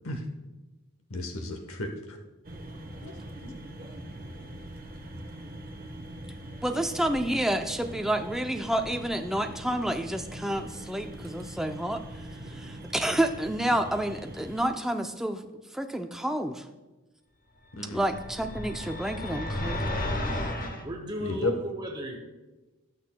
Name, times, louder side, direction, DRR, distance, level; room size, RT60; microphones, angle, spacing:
voice 1, 1.1-2.2 3.0-3.1 3.4-3.6 17.8-18.0 21.2-21.5, left 2 dB, 75° left, 4 dB, 0.9 m, -33 dB
sound 1, 2.4-14.6, right 1 dB, 40° right, 1.1 m, -42 dB
voice 2, 6.6-16.7 17.8-19.8 20.3-20.5, right 1 dB, ahead, 5 dB, 0.4 m, -30 dB
sound 2, 17.9-20.8, left 1 dB, 40° left, 0.9 m, -32 dB
voice 3, 20.8-22.2, equal, 20° right, 2 dB, 0.9 m, -35 dB
18.5 x 6.5 x 2.2 m, 1.1 s
head